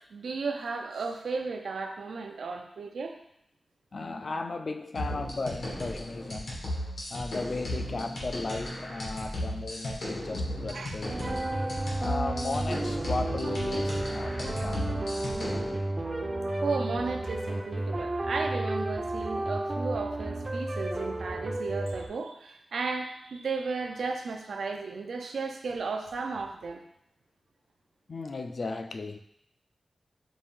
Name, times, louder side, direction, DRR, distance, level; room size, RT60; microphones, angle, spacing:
voice 1, 0.1-3.2 10.7-11.0 16.6-26.8, right 4 dB, 85° right, 4 dB, 0.5 m, -34 dB
voice 2, 3.9-6.6 7.1-11.5 12.0-15.0 28.1-29.2, left 3 dB, 45° left, 6 dB, 0.3 m, -36 dB
sound 1, 5.0-15.7, left 1 dB, 85° left, 1.5 m, -36 dB
sound 2, 11.1-22.1, right 1 dB, 30° right, 0.5 m, -32 dB
5.1 x 2.5 x 3.6 m, 0.75 s
wide cardioid pair, 140°, 0 cm